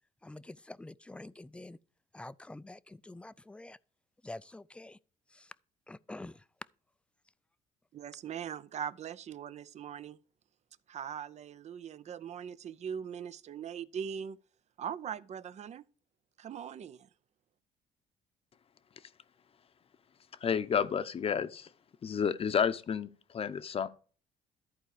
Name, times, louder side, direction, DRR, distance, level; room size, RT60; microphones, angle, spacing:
voice 1, 0.2-1.8 2.1-3.8 4.2-5.0 5.3-5.5 5.9-6.5, left 2 dB, 5° left, 0.4 m, -47 dB
voice 2, 7.9-10.2 10.9-14.4 14.8-15.8 16.4-17.1, right 8 dB, 45° right, 0.6 m, -41 dB
voice 3, 20.3-21.7 22.0-23.9, left 7 dB, 35° left, 0.8 m, -31 dB
13.5 x 4.6 x 4.8 m
cardioid pair, 100°, 16 cm